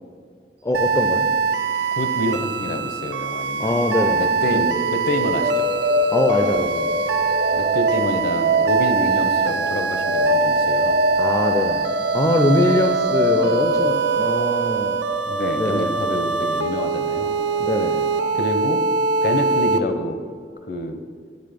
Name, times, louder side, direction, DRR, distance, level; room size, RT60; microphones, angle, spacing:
voice 1, 0.6-1.3 3.6-4.7 6.1-7.0 11.2-11.9 12.1-15.0 15.6-16.0 17.6-18.0, left 1 dB, 20° left, 5 dB, 0.4 m, -22 dB
sound 1, 0.7-19.8, right 5 dB, 90° right, 0.5 m, -23 dB
voice 2, 2.0-3.7 4.2-5.7 7.5-11.0 15.3-17.4 18.3-18.8 19.2-20.2 20.7-21.0, left 1 dB, 55° left, 8 dB, 0.7 m, -27 dB
sound 2, 4.6-18.6, equal, 60° right, 0.9 m, -24 dB
9.4 x 6.3 x 5.1 m, 2.1 s
head